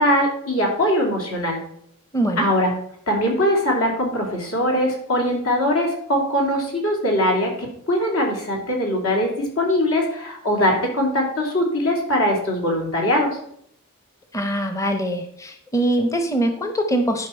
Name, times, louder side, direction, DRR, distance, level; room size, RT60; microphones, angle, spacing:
voice 1, 0.0-1.6 2.4-2.7 3.1-13.4, equal, 65° left, 0 dB, 2.6 m, -21 dB
voice 2, 2.1-2.5 14.3-17.3, right 1 dB, 15° left, 5 dB, 0.8 m, -23 dB
11.0 x 5.2 x 4.3 m, 0.69 s
head